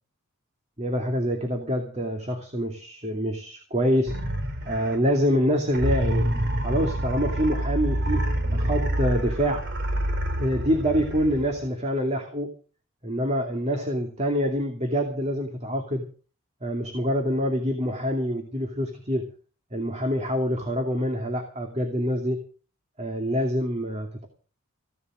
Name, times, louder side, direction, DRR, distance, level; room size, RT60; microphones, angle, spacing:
voice 1, 0.8-4.1 4.7-6.3 6.6-8.2 8.5-9.6 10.4-12.5 13.0-16.0 16.6-19.2 19.7-22.4 23.0-24.3, equal, 30° right, 4 dB, 2.5 m, -26 dB
sound 1, 4.1-5.2 5.7-11.7, right 1 dB, 55° right, 3.4 m, -27 dB
16.5 x 11.5 x 6.3 m, 0.38 s
head